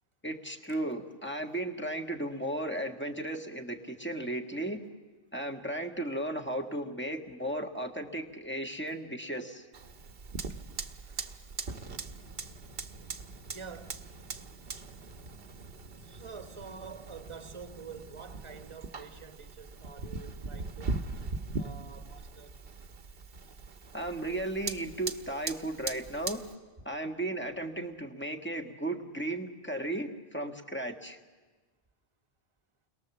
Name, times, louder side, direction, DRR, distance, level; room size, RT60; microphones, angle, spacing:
voice 1, 0.2-4.8 5.3-9.7 23.9-26.4 26.8-31.2, right 1 dB, 10° left, 1.5 m, -35 dB
Fire, 9.7-26.5, right 3 dB, 60° right, 1.2 m, -41 dB
voice 2, 11.0-11.4 13.5-14.0 16.0-20.9 21.6-22.5, right 5 dB, 30° right, 1.3 m, -47 dB
29.5 x 22.0 x 7.2 m
omnidirectional pair, 1.1 m